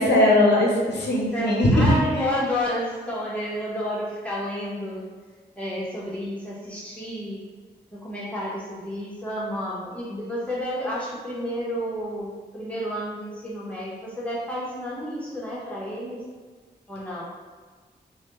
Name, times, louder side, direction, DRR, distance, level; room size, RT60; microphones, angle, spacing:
voice 1, 0.0-2.2, left 1 dB, 75° left, -3 dB, 0.6 m, -19 dB
voice 2, 1.0-5.1 5.6-7.4 7.9-16.2 16.9-17.2, equal, 5° left, -6 dB, 1.2 m, -31 dB
3.2 x 2.3 x 3.0 m, 1.4 s
cardioid pair, 45°, 18 cm